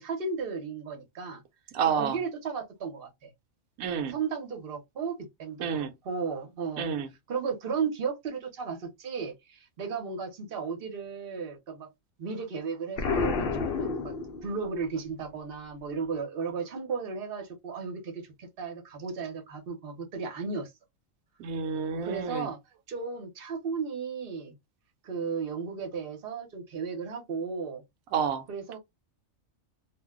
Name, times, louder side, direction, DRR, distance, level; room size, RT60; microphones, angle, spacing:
voice 1, 0.0-1.4 1.9-3.3 4.1-6.9 7.3-11.9 12.2-14.1 14.4-20.7 22.0-22.6 22.9-24.5 25.0-27.8 28.5-28.8, right 5 dB, 50° right, 1.0 m, -35 dB
voice 2, 1.7-2.2 3.8-4.2 5.6-5.9 6.8-7.1 21.4-22.5 28.1-28.4, right 7 dB, 90° right, 1.0 m, -29 dB
Explosion, 13.0-14.8, left 4 dB, 55° left, 0.8 m, -30 dB
2.5 x 2.2 x 3.6 m
omnidirectional pair, 1.4 m